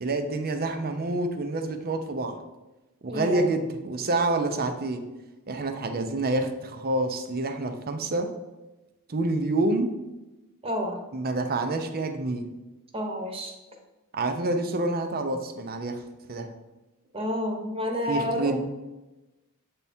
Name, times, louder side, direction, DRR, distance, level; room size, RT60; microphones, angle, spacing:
voice 1, 0.0-2.4 3.0-5.0 5.5-8.3 9.1-9.9 11.1-12.5 14.1-16.0 16.3-16.5 18.1-18.7, right 2 dB, 45° right, 7 dB, 0.6 m, -27 dB
voice 2, 3.1-3.5 10.6-11.0 12.9-13.5 17.1-18.5, left 1 dB, 25° right, 2 dB, 1.1 m, -29 dB
8.0 x 3.5 x 4.3 m, 1.1 s
head